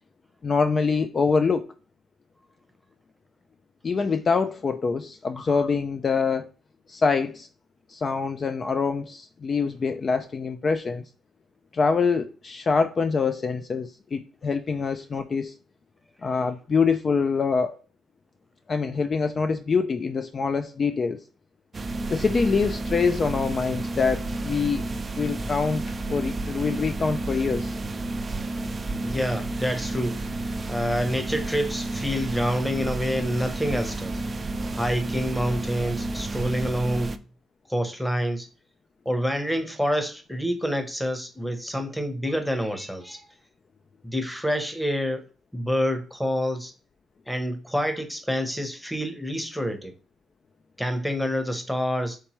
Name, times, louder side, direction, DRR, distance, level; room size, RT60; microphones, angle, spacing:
voice 1, 0.4-1.7 3.8-6.5 6.9-7.5 7.9-11.0 11.7-15.6 16.2-17.8 18.7-21.2 22.1-24.8 25.2-25.8 26.1-27.7, left 5 dB, 40° left, 0.3 m, -25 dB
sound 1, 21.7-37.2, right 2 dB, 30° right, 0.4 m, -31 dB
voice 2, 29.0-34.2 34.7-37.1 37.7-38.5 39.0-43.3 44.0-45.2 45.5-46.7 47.3-49.9 50.8-52.2, equal, 5° left, 0.9 m, -27 dB
4.4 x 3.4 x 3.0 m
cardioid pair, 90°, 0 cm